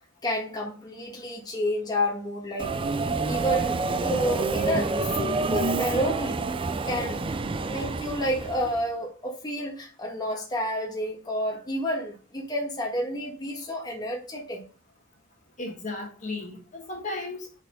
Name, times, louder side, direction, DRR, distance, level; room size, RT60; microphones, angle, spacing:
voice 1, 0.2-2.7 3.2-4.9 5.2-6.5 6.8-7.2 7.6-14.6, equal, 20° left, 1.5 m, -30 dB
Subway metro underground, 2.6-8.8, right 3 dB, 25° right, 0.4 m, -28 dB
voice 2, 15.6-17.6, left 2 dB, 40° left, 1.6 m, -35 dB
6.6 x 4.3 x 5.0 m
head